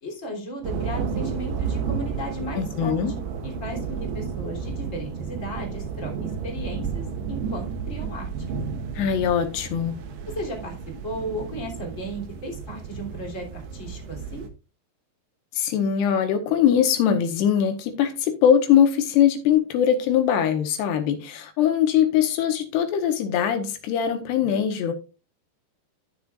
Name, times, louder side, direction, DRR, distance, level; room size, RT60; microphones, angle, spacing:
voice 1, 0.0-2.9 3.4-8.3 10.3-10.7 11.0-14.5, equal, 20° left, 2.9 m, -35 dB
sound 1, 0.6-14.5, right 6 dB, 75° right, 3.3 m, -32 dB
voice 2, 2.5-3.1 9.0-10.0 15.5-24.9, left 9 dB, 80° left, 3.0 m, -21 dB
13.5 x 7.0 x 2.5 m
omnidirectional pair, 4.8 m